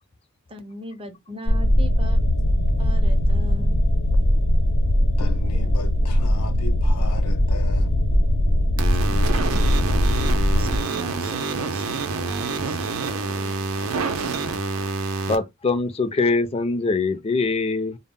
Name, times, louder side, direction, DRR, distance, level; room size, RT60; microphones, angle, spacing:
voice 1, 0.5-2.2 2.8-3.8 8.8-9.7 10.6-13.8, equal, 25° right, 0.5 m, -40 dB
sound 1, 1.5-10.8, equal, 70° left, 0.8 m, -20 dB
voice 2, 5.2-8.0, left 4 dB, 90° left, 0.5 m, -37 dB
sound 2, 8.8-15.4, right 4 dB, 80° right, 0.5 m, -27 dB
voice 3, 15.3-18.0, left 3 dB, 30° left, 0.4 m, -23 dB
2.1 x 2.0 x 3.5 m
head